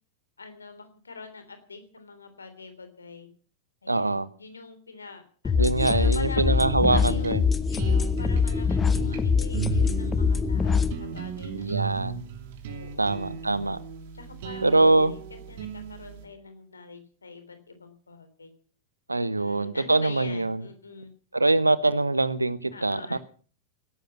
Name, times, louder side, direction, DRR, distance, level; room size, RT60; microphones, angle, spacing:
voice 1, 0.4-3.3 3.8-7.3 7.7-12.0 12.7-13.3 14.1-15.2 15.5-18.5 19.4-21.1 22.7-23.2, left 4 dB, 75° left, 9 dB, 3.4 m, -44 dB
voice 2, 3.9-4.3 5.6-7.4 11.5-12.2 13.0-13.8 14.6-15.1 19.1-20.6 21.3-23.2, right 2 dB, 85° right, 16 dB, 1.1 m, -23 dB
sound 1, 5.4-10.9, left 5 dB, 20° left, 1.0 m, -24 dB
sound 2, 6.5-16.2, right 7 dB, 50° right, 3.1 m, -36 dB
17.5 x 13.5 x 6.0 m, 0.43 s
figure-of-eight pair, 90°, 0 cm